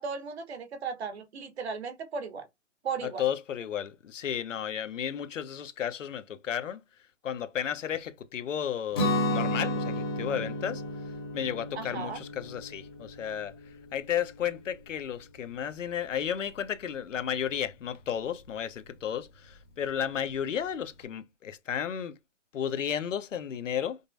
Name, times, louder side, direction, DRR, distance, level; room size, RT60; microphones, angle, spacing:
voice 1, 0.0-2.5 2.8-3.2 11.7-12.2, right 5 dB, 60° right, 1.1 m, -36 dB
voice 2, 3.0-6.8 7.2-10.8 11.3-13.5 13.9-22.1 22.5-24.0, left 9 dB, 85° left, 0.8 m, -33 dB
Guitar, 8.9-14.8, left 1 dB, 20° left, 0.6 m, -33 dB
5.2 x 2.0 x 2.6 m
hypercardioid pair, 165°, 37 cm